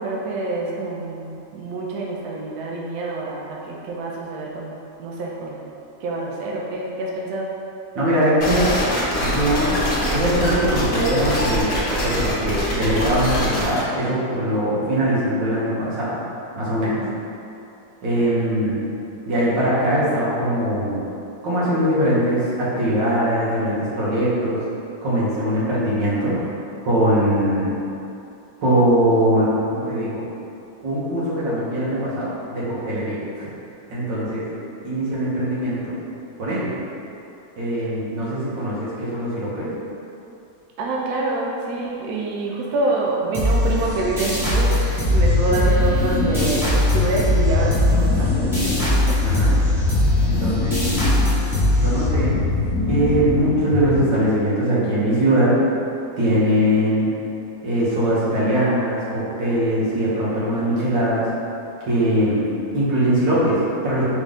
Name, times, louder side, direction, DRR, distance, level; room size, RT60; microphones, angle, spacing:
voice 1, 0.0-5.6 6.0-7.5 16.8-17.1 40.8-49.3 49.5-49.7, right 2 dB, 70° right, -3 dB, 1.0 m, -26 dB
voice 2, 8.0-8.7 9.2-9.7 10.1-16.2 16.5-17.0 18.0-18.8 19.3-21.0 21.4-24.6 25.0-26.4 26.8-27.7 28.6-30.2 30.8-33.5 33.9-34.4 34.8-35.9 36.4-36.7 37.6-39.7 49.2-49.6 50.2-50.8 51.7-52.4 52.9-55.5 56.2-57.1 57.6-61.3 61.9-62.4 62.7-64.0, right 1 dB, 90° right, -8 dB, 1.8 m, -21 dB
sound 1, 8.4-13.8, equal, 45° left, 0.9 m, -23 dB
sound 2, 43.3-52.6, left 1 dB, ahead, 0.7 m, -21 dB
sound 3, 45.1-54.3, left 3 dB, 75° left, 1.1 m, -23 dB
4.0 x 3.7 x 3.4 m, 2.7 s
omnidirectional pair, 1.9 m